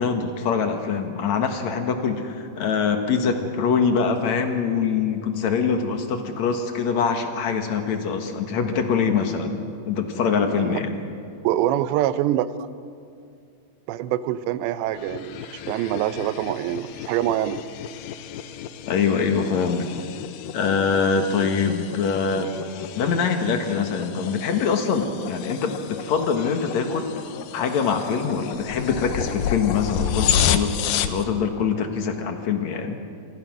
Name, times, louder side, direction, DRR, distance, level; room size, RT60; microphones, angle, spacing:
voice 1, 0.0-9.6 9.9-10.9 18.9-19.9 20.5-22.5 22.9-27.1 27.5-30.8 31.1-33.0, left 6 dB, 55° left, 5 dB, 2.2 m, -24 dB
voice 2, 10.3-10.8 11.4-12.5 13.9-17.6, right 13 dB, 85° right, 13 dB, 3.0 m, -25 dB
sound 1, 14.9-31.2, left 9 dB, 80° left, 2.0 m, -31 dB
27.5 x 23.0 x 6.2 m, 2.4 s
omnidirectional pair, 4.9 m